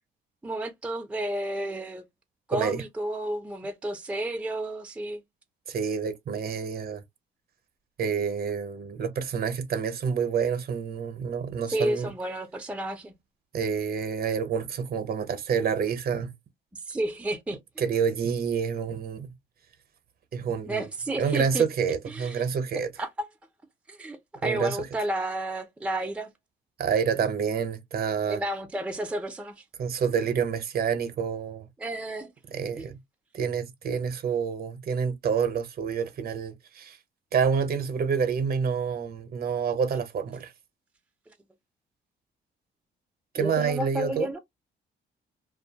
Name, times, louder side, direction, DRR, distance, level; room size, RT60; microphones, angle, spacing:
voice 1, 0.4-2.0 2.5-5.2 11.7-13.1 16.9-17.6 20.7-21.7 22.1-22.4 23.0-23.1 23.9-26.3 28.3-29.6 31.8-32.3 32.8-32.9 43.4-44.4, right 1 dB, 5° right, 0.5 m, -31 dB
voice 2, 2.5-2.8 5.7-7.0 8.0-12.1 13.5-16.3 17.8-19.3 20.3-20.9 21.2-22.9 24.4-24.8 26.8-28.4 29.8-31.7 32.5-33.0 33.3-37.0 37.3-40.5 43.3-44.3, right 6 dB, 50° right, 0.7 m, -28 dB
2.5 x 2.2 x 2.7 m
cardioid pair, 90°, 20 cm